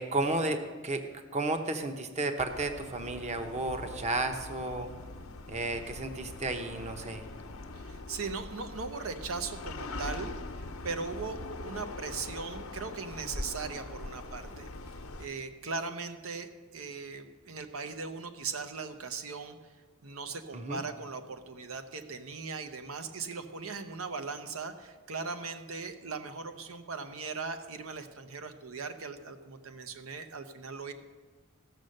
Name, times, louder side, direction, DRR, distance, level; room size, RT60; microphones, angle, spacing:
voice 1, 0.0-4.9 5.5-7.3 20.5-20.8, right 2 dB, 35° right, 6 dB, 0.9 m, -33 dB
sound 1, 2.4-15.3, left 2 dB, 90° left, 0.9 m, -42 dB
voice 2, 7.8-14.7 15.2-19.6 20.0-30.9, right 4 dB, 80° right, 8 dB, 0.8 m, -39 dB
16.0 x 6.5 x 6.5 m, 1.4 s
head